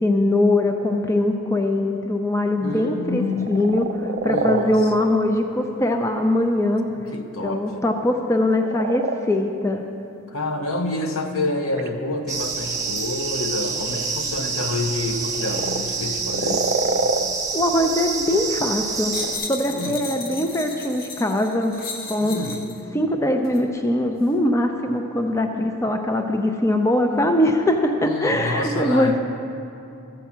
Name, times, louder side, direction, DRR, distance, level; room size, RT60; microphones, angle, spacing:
voice 1, 0.0-3.2 3.5-6.9 7.4-9.8 17.5-19.2 19.5-21.7 22.1-22.4 22.9-29.2, left 1 dB, 15° left, 4 dB, 0.5 m, -21 dB
voice 2, 2.6-3.6 4.2-4.9 7.1-7.8 10.3-16.7 19.7-20.0 22.2-22.7 25.6-25.7 28.0-29.2, left 2 dB, 75° left, 5 dB, 0.8 m, -28 dB
sound 1, 3.3-4.7 5.3-5.5 8.5-9.7 11.8-11.9 12.5-12.9 13.5-14.0 15.1-15.8 16.2-17.2 18.8-19.3, right 3 dB, 50° right, 0.5 m, -26 dB
sound 2, 12.3-19.4, right 4 dB, 15° right, 0.9 m, -28 dB
sound 3, 19.0-22.8 23.4-23.6, left 3 dB, 45° left, 0.7 m, -35 dB
13.5 x 4.7 x 7.3 m, 2.6 s
head